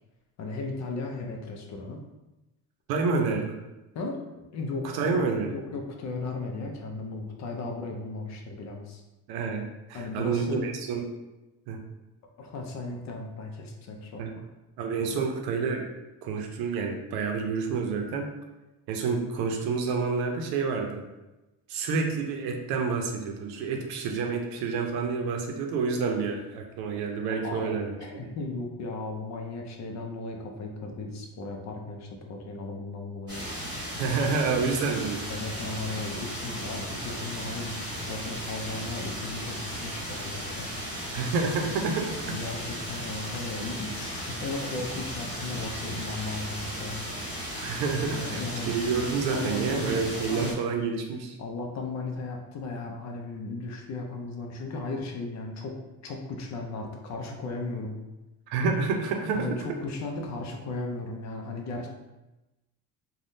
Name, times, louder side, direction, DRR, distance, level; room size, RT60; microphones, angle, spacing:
voice 1, 0.4-2.0 3.9-9.0 9.9-10.6 12.4-14.5 27.4-33.5 35.3-40.7 42.2-47.0 48.1-48.7 49.3-50.6 51.4-58.0 59.3-61.9, left 3 dB, 50° left, 2 dB, 0.6 m, -36 dB
voice 2, 2.9-3.6 4.9-5.6 9.3-11.0 11.7-11.8 14.2-14.3 14.8-15.9 16.2-18.3 18.9-21.0 21.7-28.3 34.0-35.3 41.1-42.4 47.6-48.4 48.7-51.4 58.5-59.6, right 4 dB, 85° right, 3 dB, 0.6 m, -28 dB
sound 1, 33.3-50.5, equal, 10° right, 1.4 m, -36 dB
3.4 x 2.2 x 2.6 m, 1.0 s
cardioid pair, 140°, 36 cm